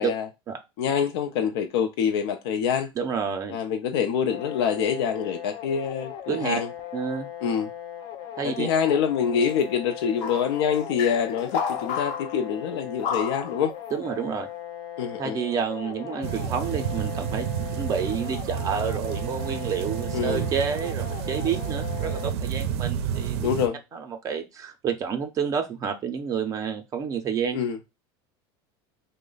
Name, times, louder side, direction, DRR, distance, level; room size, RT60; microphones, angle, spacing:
voice 1, 0.8-2.9 3.5-6.7 7.4-7.7 8.4-13.7 15.0-15.4 20.1-20.4 23.4-23.8 27.5-27.8, left 7 dB, 85° left, 0.5 m, -26 dB
voice 2, 3.0-3.6 6.3-6.6 6.9-7.3 8.4-8.7 13.9-14.5 15.2-17.5 17.7-23.4 23.9-27.6, right 7 dB, 25° right, 0.4 m, -29 dB
sound 1, 4.3-22.3, left 10 dB, 40° left, 0.5 m, -38 dB
sound 2, 9.2-9.5 10.2-10.6 11.0-12.4 13.0-13.7, left 7 dB, 65° left, 0.9 m, -31 dB
sound 3, 16.2-23.7, right 9 dB, 80° right, 0.5 m, -30 dB
3.1 x 2.1 x 3.8 m
supercardioid pair, 150°, 13 cm